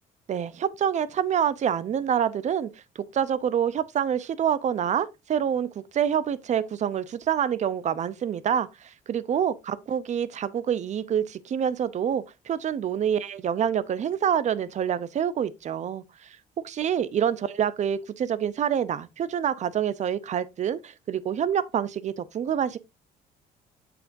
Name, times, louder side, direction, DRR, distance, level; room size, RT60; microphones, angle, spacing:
voice 1, 0.3-2.7 3.1-16.4 16.6-22.8, right 9 dB, 45° right, 0.6 m, -27 dB
7.6 x 5.9 x 2.6 m
cardioid pair, 110°, 17 cm